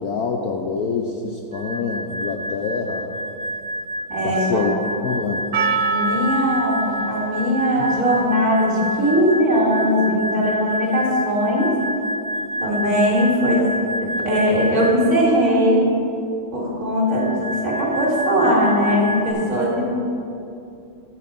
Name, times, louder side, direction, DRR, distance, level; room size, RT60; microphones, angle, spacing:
voice 1, 0.0-3.1 4.2-5.5 7.8-7.9, left 4 dB, 70° left, 0 dB, 0.9 m, -26 dB
sound 1, 1.5-15.2 17.1-19.3, equal, 60° right, 0.6 m, -29 dB
voice 2, 4.1-4.7 5.8-11.7 12.6-13.7 14.0-15.8 16.5-19.9, equal, 40° right, -5 dB, 2.2 m, -20 dB
Percussion, 5.5-10.5, right 3 dB, 80° right, 1.5 m, -28 dB
11.5 x 4.7 x 5.2 m, 2.6 s
omnidirectional pair, 2.1 m